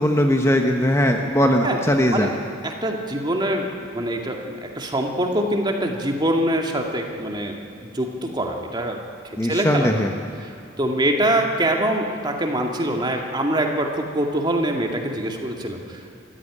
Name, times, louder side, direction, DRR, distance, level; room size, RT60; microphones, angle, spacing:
voice 1, 0.0-2.3 9.4-10.1, equal, 15° left, 3 dB, 1.1 m, -19 dB
voice 2, 2.6-7.6 7.8-9.0 9.4-10.0 10.8-16.1, right 1 dB, 20° right, 2 dB, 2.2 m, -24 dB
26.0 x 14.5 x 9.9 m, 2.6 s
head